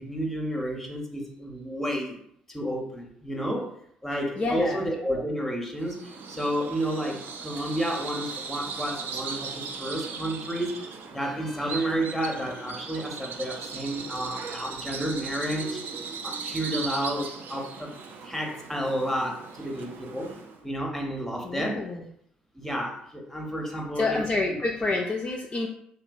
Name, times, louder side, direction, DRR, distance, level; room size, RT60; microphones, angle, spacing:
voice 1, 0.0-2.2 2.5-3.7 4.0-10.8 11.1-15.8 16.2-17.9 18.2-20.4 20.6-21.8 22.5-24.2 24.5-24.6, equal, 5° left, 1 dB, 0.7 m, -31 dB
voice 2, 4.4-4.8 21.4-22.0 24.0-25.7, left 3 dB, 30° left, 0 dB, 0.3 m, -28 dB
Bird vocalization bird call bird song, 5.8-20.6, right 5 dB, 50° right, 0.4 m, -38 dB
2.9 x 2.1 x 2.6 m, 0.71 s
figure-of-eight pair, 50°, 4 cm